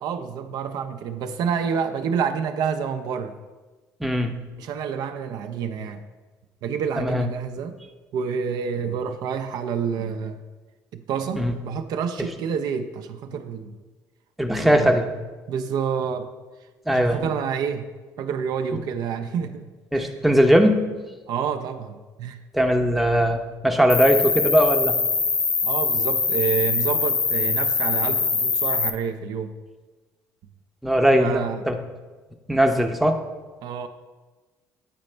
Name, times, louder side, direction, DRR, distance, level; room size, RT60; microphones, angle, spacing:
voice 1, 0.0-3.4 4.6-6.0 6.6-7.8 8.1-10.4 10.9-13.7 14.6-15.1 15.5-16.3 16.9-17.9 18.2-19.7 19.9-20.2 21.3-22.4 25.6-29.5 31.2-31.6 33.6-33.9, right 7 dB, 70° right, 8 dB, 0.4 m, -28 dB
voice 2, 4.0-4.3 7.0-7.3 11.4-11.5 14.4-15.1 16.9-17.3 19.9-20.8 22.5-25.0 30.8-31.8 32.5-33.2, equal, ahead, 4 dB, 0.6 m, -19 dB
Cricket, 23.9-28.9, left 5 dB, 40° left, 0.6 m, -23 dB
8.5 x 4.0 x 3.2 m, 1.3 s
cardioid pair, 85°, 7 cm